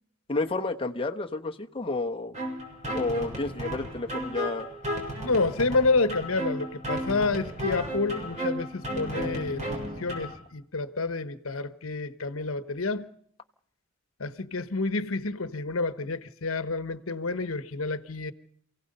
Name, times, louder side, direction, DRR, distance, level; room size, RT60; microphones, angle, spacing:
voice 1, 0.3-2.3 2.9-4.7, left 3 dB, 25° left, 1.1 m, -30 dB
sound 1, 2.3-10.3, equal, 35° right, 7.1 m, -34 dB
voice 2, 5.2-13.1 14.2-18.3, left 3 dB, 85° left, 1.2 m, -29 dB
28.5 x 17.0 x 5.4 m
head